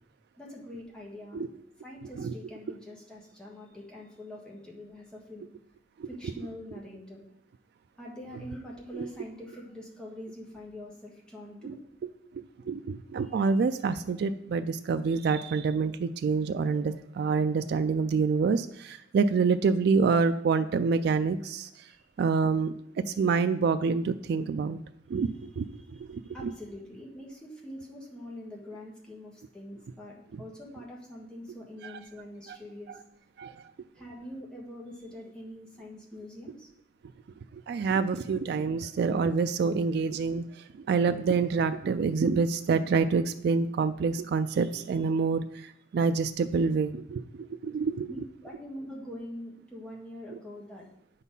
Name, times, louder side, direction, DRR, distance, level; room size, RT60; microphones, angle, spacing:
voice 1, 0.4-1.4 1.8-5.4 6.1-7.2 8.0-11.8 13.2-13.3 21.8-22.0 25.7-33.0 33.9-36.7 48.1-50.9, left 1 dB, 5° left, -3 dB, 1.6 m, -44 dB
voice 2, 12.3-21.7 22.2-22.7 23.1-24.8 25.1-26.5 31.8-31.9 32.5-32.6 32.9-33.0 33.4-33.6 37.5-48.1, right 5 dB, 65° right, 10 dB, 0.3 m, -27 dB
8.0 x 4.1 x 5.4 m, 0.75 s
head